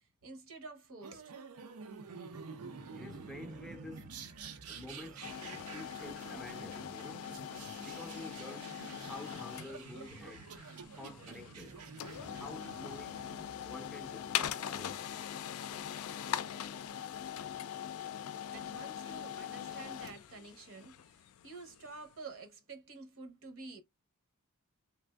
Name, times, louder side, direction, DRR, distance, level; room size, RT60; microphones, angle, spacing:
voice 1, 0.0-1.3 18.5-23.8, right 3 dB, 65° right, 0.9 m, -49 dB
sound 1, 1.0-13.7, right 5 dB, 90° right, 0.6 m, -49 dB
voice 2, 3.0-4.1 4.6-7.3 7.7-8.7 9.0-10.5 10.9-13.3 13.6-15.1, left 2 dB, ahead, 0.5 m, -49 dB
sound 2, 5.2-22.1, left 9 dB, 70° left, 0.4 m, -42 dB
3.4 x 2.5 x 2.2 m
head